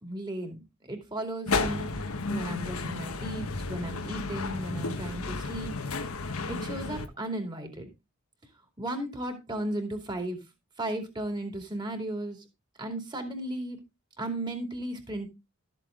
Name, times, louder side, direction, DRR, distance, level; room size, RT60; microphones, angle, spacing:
voice 1, 0.0-1.9 2.3-5.7 6.5-7.9 8.8-10.4 10.8-12.4 12.8-13.8 14.2-15.3, right 1 dB, 20° right, 4 dB, 2.5 m, -35 dB
sound 1, 1.5-7.1, left 3 dB, 80° left, 1.2 m, -32 dB
13.0 x 7.7 x 3.7 m, 0.25 s
head